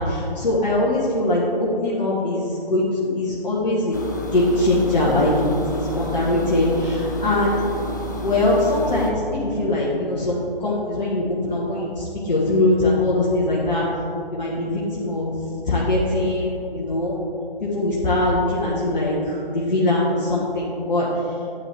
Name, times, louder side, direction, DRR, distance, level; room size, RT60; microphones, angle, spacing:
voice 1, 0.0-4.0 4.3-5.3 5.7-7.7 8.2-13.8 14.3-15.3 15.7-17.1 17.6-21.1, left 2 dB, 50° left, -6 dB, 1.4 m, -22 dB
sound 1, 3.9-9.1, left 1 dB, 20° left, 0.4 m, -30 dB
10.5 x 7.4 x 3.4 m, 2.8 s
figure-of-eight pair, 140°, 29 cm